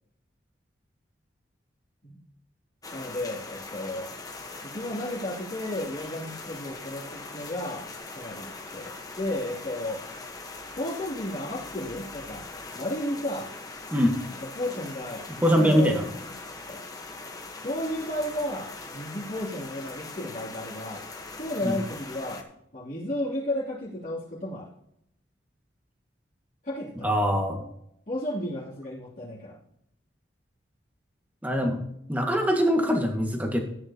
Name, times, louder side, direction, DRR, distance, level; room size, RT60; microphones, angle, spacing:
sound 1, 2.8-22.4, left 3 dB, 20° left, 1.2 m, -41 dB
voice 1, 2.9-4.1 4.6-7.9 8.1-10.0 10.8-12.5 12.7-13.5 14.4-15.3 15.5-16.3 16.7-16.8 17.6-21.0 21.4-22.4 22.7-24.7 26.6-27.1 28.1-29.6, left 1 dB, 45° left, -7 dB, 3.0 m, -33 dB
voice 2, 15.4-16.0 21.6-21.7 27.0-27.6 31.4-31.8 32.1-33.6, equal, 10° right, 2 dB, 1.8 m, -23 dB
14.0 x 9.9 x 2.9 m, 0.74 s
head